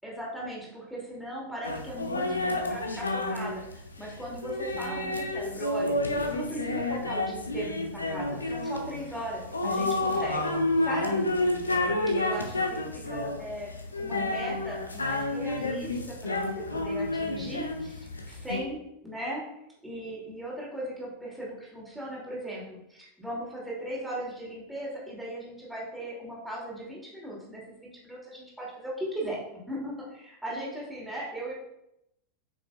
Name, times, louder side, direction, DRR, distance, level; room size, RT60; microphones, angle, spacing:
voice 1, 0.0-6.0 6.3-10.5 10.8-11.2 11.6-19.4 19.8-29.4 29.7-31.5, right 1 dB, 5° right, -5 dB, 2.6 m, -38 dB
sound 1, 1.6-18.6, left 2 dB, 80° left, 0.8 m, -30 dB
8.3 x 5.9 x 2.4 m, 0.83 s
figure-of-eight pair, 90°, 0 cm